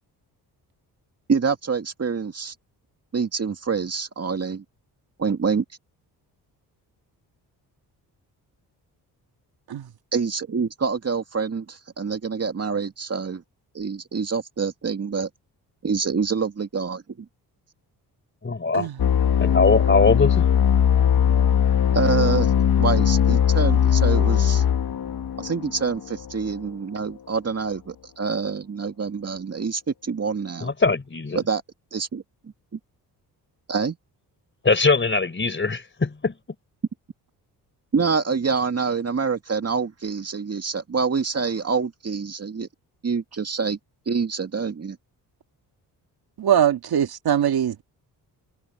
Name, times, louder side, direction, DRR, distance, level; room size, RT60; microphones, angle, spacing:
voice 1, 1.3-2.5 3.1-4.6 5.2-5.6 10.1-13.4 13.7-15.3 15.8-17.3 21.9-22.5 22.8-24.6 25.4-30.7 31.3-31.6 31.9-32.2 33.7-34.0 37.9-42.7 43.0-43.8 44.1-45.0, right 5 dB, 40° right, 2.1 m, -26 dB
voice 2, 18.4-18.9 19.4-20.5 30.6-31.4 34.6-36.3, left 4 dB, 30° left, 4.2 m, -21 dB
sound 1, 19.0-26.5, left 9 dB, 65° left, 1.7 m, -20 dB
voice 3, 46.4-47.8, right 9 dB, 65° right, 2.1 m, -22 dB
cardioid pair, 75°, 40 cm